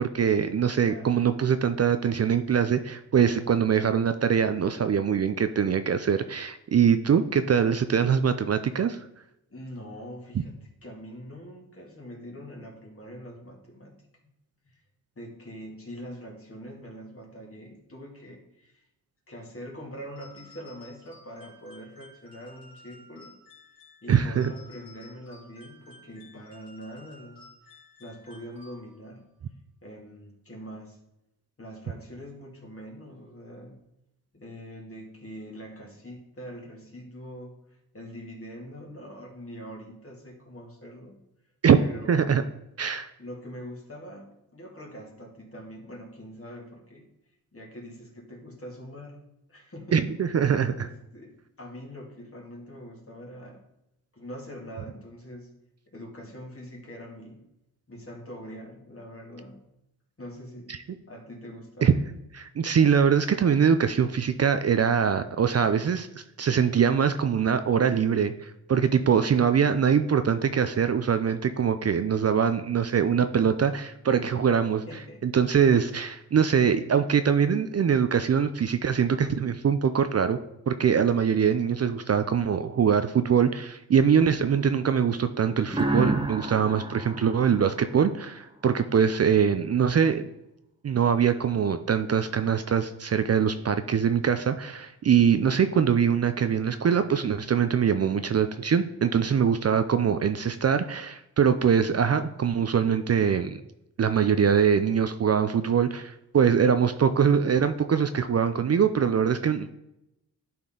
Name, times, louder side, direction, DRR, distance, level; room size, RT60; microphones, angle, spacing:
voice 1, 0.0-9.0 24.1-24.5 41.6-41.8 42.1-42.4 42.8-43.1 49.9-50.9 61.8-62.0 62.3-74.8 75.2-80.4 80.7-90.3 90.8-103.6 104.0-109.7, right 7 dB, 45° right, 10 dB, 0.5 m, -23 dB
voice 2, 0.8-1.2 9.5-10.6 10.8-13.9 14.6-14.8 15.2-18.8 19.3-23.3 24.0-29.2 29.8-31.0 31.6-33.8 34.3-41.2 41.8-42.5 43.2-47.1 47.5-49.2 49.5-50.1 50.7-53.6 54.1-55.6 55.9-57.4 57.9-59.7 60.2-60.8 61.1-62.0 69.0-69.2 74.9-75.2 88.8-89.2 106.5-106.7, equal, 35° left, -1 dB, 2.5 m, -43 dB
sound 1, 20.2-29.2, left 1 dB, 70° left, 3.2 m, -53 dB
sound 2, 85.7-88.4, right 2 dB, 15° right, 1.0 m, -30 dB
12.0 x 4.4 x 3.8 m, 0.87 s
cardioid pair, 70°, 36 cm